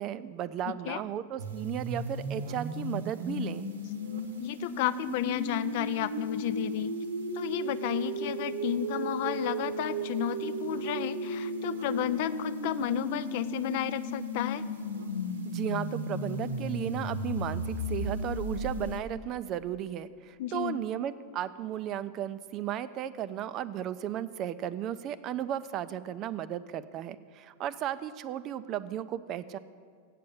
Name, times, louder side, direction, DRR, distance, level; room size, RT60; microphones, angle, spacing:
voice 1, 0.0-3.7 15.5-29.6, right 11 dB, 35° right, 15 dB, 0.4 m, -35 dB
voice 2, 0.7-1.0 4.4-6.9 7.3-14.6 20.4-20.8, left 12 dB, 50° left, 14 dB, 0.3 m, -32 dB
sound 1, 1.4-19.0, right 1 dB, 70° right, 1.0 m, -35 dB
8.4 x 7.4 x 7.6 m, 2.1 s
figure-of-eight pair, 90°, 0 cm